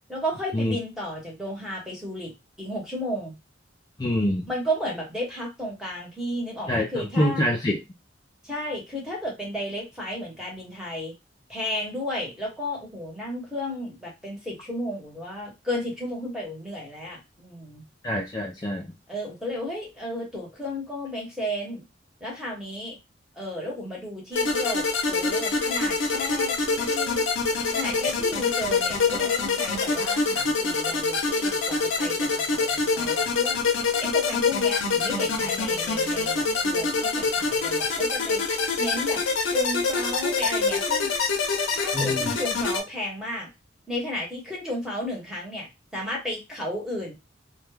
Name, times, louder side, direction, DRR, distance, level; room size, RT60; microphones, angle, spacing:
voice 1, 0.1-3.4 4.5-7.5 8.4-11.1 11.5-17.8 19.1-21.8 22.2-23.0 23.3-27.2 27.7-33.6 34.0-39.2 39.5-41.1 41.7-43.5 43.9-45.7 45.9-47.1, left 1 dB, 5° right, -3 dB, 1.0 m, -33 dB
voice 2, 4.0-4.5 6.7-7.8 18.0-18.9 41.9-42.3, left 1 dB, 20° left, 0 dB, 0.3 m, -25 dB
sound 1, 24.3-42.8, left 4 dB, 85° left, 0.6 m, -25 dB
2.2 x 2.1 x 3.2 m, 0.23 s
head